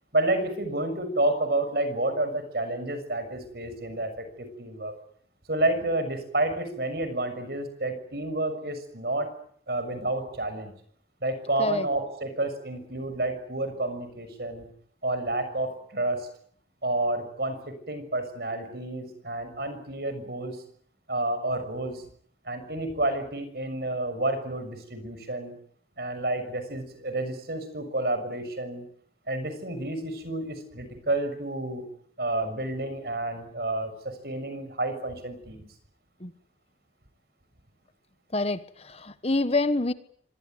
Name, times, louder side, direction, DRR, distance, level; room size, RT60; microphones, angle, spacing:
voice 1, 0.1-4.9 5.5-9.3 9.7-10.7 11.2-14.7 15.0-16.3 16.8-20.6 21.1-22.0 22.4-25.5 26.0-28.8 29.3-31.9 32.2-35.7, right 2 dB, 60° right, 10 dB, 6.6 m, -30 dB
voice 2, 38.3-39.9, left 2 dB, 35° left, 12 dB, 1.3 m, -26 dB
25.5 x 20.0 x 9.3 m, 0.64 s
head